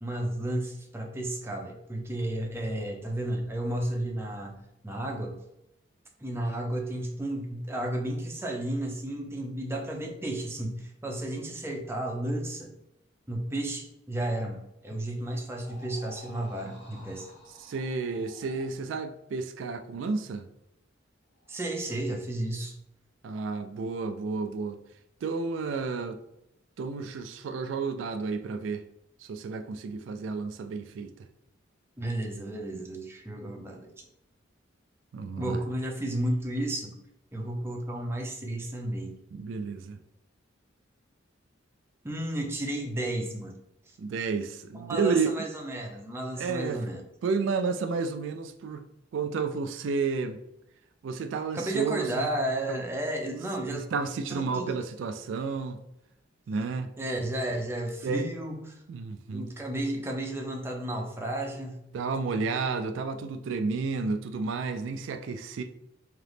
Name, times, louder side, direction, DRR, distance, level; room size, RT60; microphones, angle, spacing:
voice 1, 0.0-5.4 6.2-12.7 13.3-17.3 21.5-22.7 32.0-34.0 35.4-36.9 37.3-39.1 42.0-43.5 44.7-47.0 51.5-53.9 54.3-54.8 57.0-58.8 59.3-61.8, right 1 dB, 10° right, 0.5 m, -33 dB
sound 1, 15.6-18.8 21.4-22.1, left 1 dB, 60° left, 1.1 m, -51 dB
voice 2, 17.6-20.5 23.2-24.8 25.2-26.2 26.8-28.8 29.2-31.3 35.1-35.6 39.3-40.0 44.0-45.3 46.4-46.8 47.2-48.9 49.1-50.4 51.0-52.3 52.7-52.8 53.7-55.8 56.5-56.9 58.0-58.3 58.9-59.5 61.9-65.6, right 4 dB, 75° right, 0.3 m, -31 dB
3.8 x 2.9 x 3.3 m
head